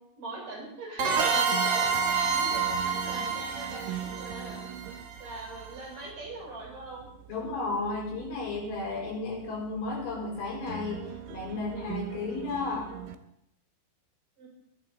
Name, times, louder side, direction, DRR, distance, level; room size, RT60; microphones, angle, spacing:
voice 1, 0.2-4.7 5.2-7.1 7.4-7.5 14.4-14.5, right 2 dB, 45° right, -3 dB, 6.4 m, -42 dB
sound 1, 1.0-5.5, right 5 dB, 65° right, 1.4 m, -28 dB
sound 2, 1.3-13.2, right 10 dB, 85° right, 3.1 m, -42 dB
voice 2, 7.3-13.0, left 3 dB, 75° left, -2 dB, 6.8 m, -33 dB
23.0 x 8.4 x 4.0 m, 0.78 s
omnidirectional pair, 5.3 m